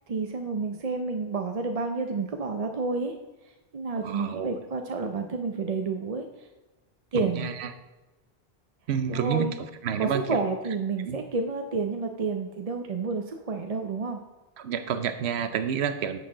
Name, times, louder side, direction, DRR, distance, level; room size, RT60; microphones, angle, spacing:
voice 1, 0.1-3.1 3.7-6.5 7.1-7.5 9.1-9.5 10.0-14.2, right 4 dB, 45° right, 4 dB, 0.6 m, -30 dB
voice 2, 4.0-4.6 7.2-7.7 8.9-10.4 11.0-11.2 14.6-16.2, right 7 dB, 85° right, 10 dB, 1.0 m, -29 dB
10.0 x 6.7 x 3.8 m, 1.1 s
omnidirectional pair, 1.1 m